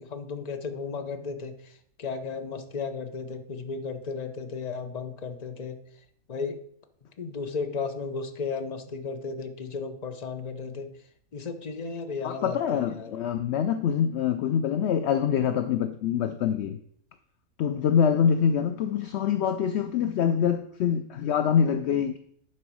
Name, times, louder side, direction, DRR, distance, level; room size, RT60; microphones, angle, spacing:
voice 1, 0.0-1.7 2.0-5.8 6.3-6.6 7.2-10.9 11.3-13.2, left 4 dB, 35° left, 7 dB, 0.9 m, -34 dB
voice 2, 12.2-16.8 17.6-22.2, left 8 dB, 60° left, 9 dB, 0.7 m, -25 dB
11.0 x 4.4 x 6.2 m, 0.66 s
omnidirectional pair, 1.5 m